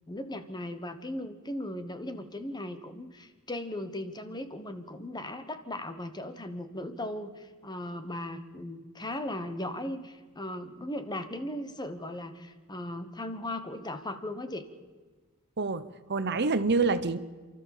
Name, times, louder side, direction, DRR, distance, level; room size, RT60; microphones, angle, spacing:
voice 1, 0.1-14.7, left 1 dB, 20° left, 10 dB, 1.3 m, -37 dB
voice 2, 15.6-17.2, right 4 dB, 50° right, 13 dB, 0.8 m, -27 dB
29.0 x 13.0 x 7.2 m, 1.4 s
head